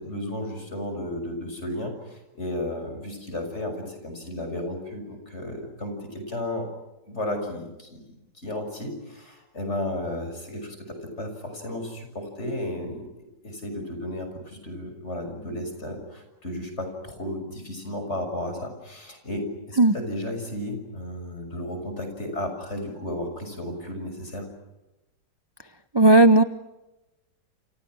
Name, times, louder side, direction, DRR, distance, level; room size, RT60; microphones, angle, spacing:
voice 1, 0.0-6.7 7.1-13.0 13.4-24.5, left 1 dB, 35° left, 5 dB, 6.7 m, -33 dB
voice 2, 25.9-26.4, right 2 dB, 30° right, 11 dB, 0.4 m, -14 dB
29.5 x 28.0 x 6.3 m, 0.99 s
omnidirectional pair, 1.9 m